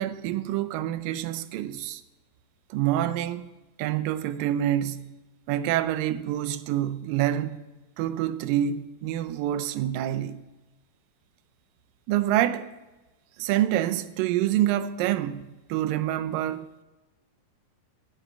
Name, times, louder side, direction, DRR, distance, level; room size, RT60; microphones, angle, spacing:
voice 1, 0.0-2.0 2.7-3.5 3.8-5.1 5.5-7.6 8.0-10.4 12.1-12.7 13.4-15.4 15.7-16.7, right 12 dB, 85° right, 2.3 m, -27 dB
9.8 x 7.5 x 6.8 m
omnidirectional pair, 4.0 m